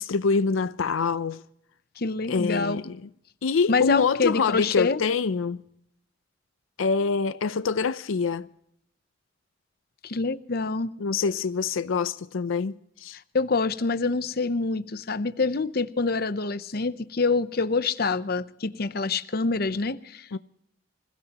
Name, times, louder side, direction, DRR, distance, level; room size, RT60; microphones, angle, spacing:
voice 1, 0.0-1.4 2.3-3.1 3.4-5.6 6.8-8.5 11.0-13.2 20.3-20.4, left 5 dB, 85° left, 0.5 m, -25 dB
voice 2, 2.0-2.8 3.7-5.0 10.0-10.9 13.3-20.3, left 4 dB, 50° left, 0.7 m, -26 dB
26.5 x 16.5 x 2.9 m
head